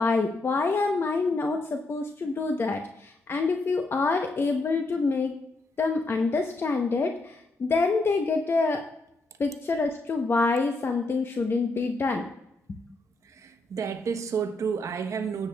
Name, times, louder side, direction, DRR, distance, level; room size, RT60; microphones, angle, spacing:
voice 1, 0.0-5.3 5.8-8.8 9.4-12.3, left 3 dB, 45° left, 0.8 m, -26 dB
voice 2, 13.2-15.5, right 6 dB, 65° right, 1.0 m, -31 dB
13.0 x 8.9 x 2.3 m
cardioid pair, 80°, 6 cm